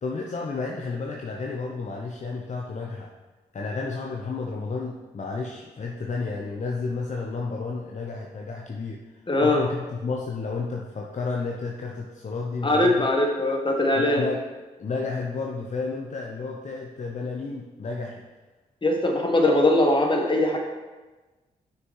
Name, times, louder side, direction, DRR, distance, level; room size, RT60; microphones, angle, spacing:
voice 1, 0.0-3.1 3.5-9.0 9.4-13.1 14.0-14.4 14.8-18.2 19.0-19.1, left 4 dB, 45° left, -1 dB, 0.9 m, -31 dB
voice 2, 9.3-9.6 12.6-14.2 18.8-20.6, left 1 dB, 30° left, 1 dB, 1.7 m, -21 dB
6.2 x 5.9 x 4.8 m, 1.2 s
supercardioid pair, 45°, 17 cm